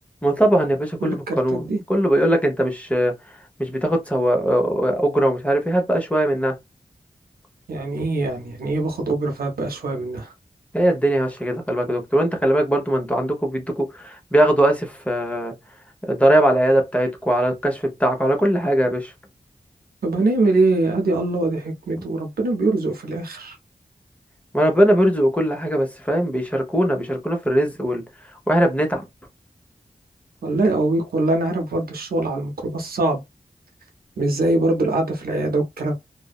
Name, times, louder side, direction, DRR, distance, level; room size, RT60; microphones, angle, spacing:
voice 1, 0.2-3.1 3.6-6.6 10.7-15.5 16.1-19.1 22.0-22.1 24.5-28.0 28.5-29.1, right 1 dB, 10° left, 0.9 m, -20 dB
voice 2, 1.0-1.8 7.7-10.3 20.0-23.6 30.4-33.2 34.2-35.9, right 2 dB, 90° right, 0.6 m, -23 dB
2.5 x 2.1 x 2.3 m
cardioid pair, 55°, 15 cm